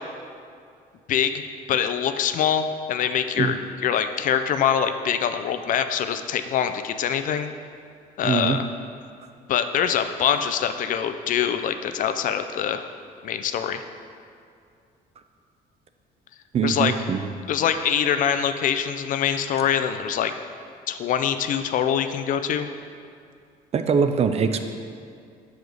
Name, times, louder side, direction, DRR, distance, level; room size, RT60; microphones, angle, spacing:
voice 1, 1.1-1.4 1.7-3.5 3.8-7.5 8.2-8.7 9.5-12.8 13.2-13.8 16.6-16.9 17.5-20.3 20.9-22.7, left 8 dB, 50° left, 9 dB, 0.4 m, -24 dB
voice 2, 8.2-8.6 16.5-17.3 23.7-24.6, right 6 dB, 40° right, 8 dB, 0.4 m, -22 dB
6.3 x 5.0 x 3.9 m, 2.3 s
cardioid pair, 110°, 17 cm